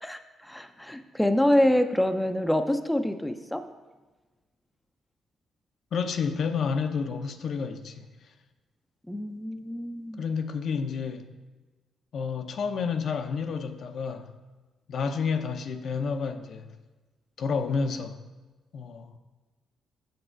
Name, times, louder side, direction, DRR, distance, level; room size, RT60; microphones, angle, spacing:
voice 1, 0.0-3.7 9.1-10.2, left 1 dB, 5° left, 7 dB, 0.4 m, -26 dB
voice 2, 5.9-8.1 10.2-11.3 12.1-14.3 14.9-16.7 17.4-18.2 18.7-19.2, left 5 dB, 60° left, 7 dB, 0.5 m, -30 dB
6.7 x 6.6 x 4.4 m, 1.2 s
cardioid pair, 90°, 0 cm